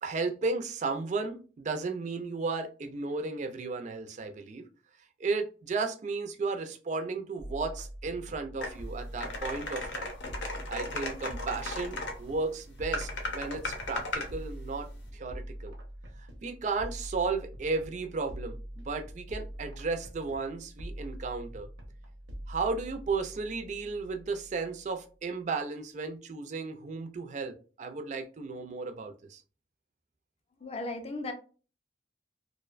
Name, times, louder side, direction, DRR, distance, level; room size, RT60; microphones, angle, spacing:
voice 1, 0.0-4.6 5.2-10.1 10.7-14.9 15.1-15.7 16.4-21.7 22.5-29.4, right 4 dB, 40° right, 6 dB, 0.3 m, -34 dB
sound 1, 7.4-25.0, equal, 85° right, 0.7 m, -44 dB
sound 2, 8.6-8.7 9.2-12.2 12.9-14.3, left 2 dB, 85° left, 0.6 m, -36 dB
voice 2, 30.6-31.3, left 2 dB, 35° left, 5 dB, 0.4 m, -36 dB
2.5 x 2.1 x 2.4 m, 0.36 s
head